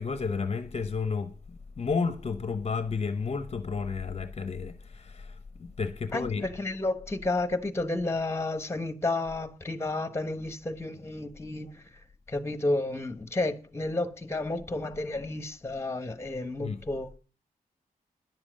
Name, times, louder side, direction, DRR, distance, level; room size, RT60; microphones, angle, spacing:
voice 1, 0.0-6.6 16.6-16.8, left 5 dB, 40° left, 0.8 m, -32 dB
voice 2, 6.1-11.8 12.3-17.2, left 2 dB, 15° left, 1.1 m, -31 dB
10.5 x 7.2 x 6.4 m
cardioid pair, 95°, 15 cm